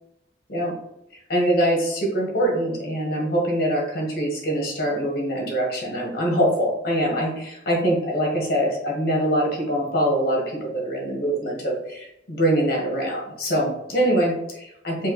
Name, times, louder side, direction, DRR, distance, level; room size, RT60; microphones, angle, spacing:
voice 1, 1.3-15.1, right 1 dB, 55° left, -1 dB, 1.4 m, -23 dB
4.7 x 2.8 x 3.0 m, 0.85 s
head